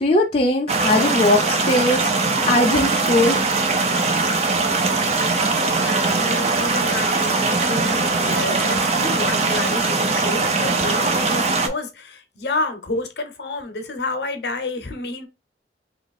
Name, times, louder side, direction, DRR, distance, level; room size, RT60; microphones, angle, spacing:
voice 1, 0.0-2.1 2.4-3.4, left 1 dB, 30° left, 0.5 m, -19 dB
sound 1, 0.7-11.7, right 3 dB, 35° right, 0.6 m, -21 dB
voice 2, 5.6-15.3, left 2 dB, 70° left, 0.7 m, -29 dB
2.9 x 2.5 x 4.0 m
head